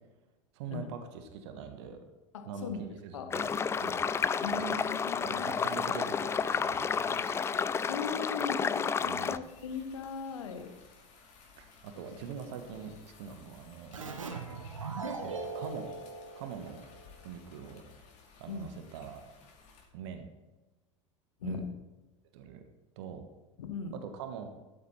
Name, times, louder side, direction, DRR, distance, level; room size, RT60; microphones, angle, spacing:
voice 1, 0.5-2.0 2.4-3.5 3.8-4.0 5.2-7.4 9.0-9.4 11.6-14.1 15.2-15.9 16.4-16.8 17.2-17.8 18.4-19.2 19.9-20.3 21.4-21.6 22.3-22.6 23.0-23.3 23.9-24.5, right 7 dB, 60° right, 7 dB, 1.3 m, -43 dB
voice 2, 2.3-2.8 3.1-3.3 4.4-5.5 7.5-10.7 14.5-14.6 18.5-18.7 21.4-21.7 23.6-24.0, left 5 dB, 70° left, 7 dB, 1.3 m, -39 dB
sound 1, 3.3-9.4, left 6 dB, 15° left, 0.4 m, -31 dB
sound 2, 9.4-19.8, left 5 dB, 45° left, 2.5 m, -57 dB
Keyboard (musical), 13.9-17.3, right 4 dB, 80° right, 1.1 m, -40 dB
12.5 x 8.2 x 4.3 m, 1.1 s
figure-of-eight pair, 80°, 16 cm